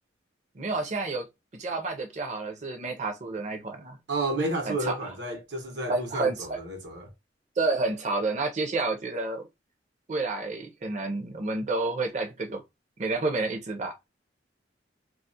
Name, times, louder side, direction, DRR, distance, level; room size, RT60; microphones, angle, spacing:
voice 1, 0.5-1.3 1.5-4.0 4.7-5.0 5.9-6.6 7.6-9.5 10.1-12.6 13.0-14.0, right 3 dB, 40° right, 0.5 m, -30 dB
voice 2, 4.1-7.1, right 2 dB, 70° right, 0.8 m, -31 dB
2.3 x 2.0 x 2.6 m
head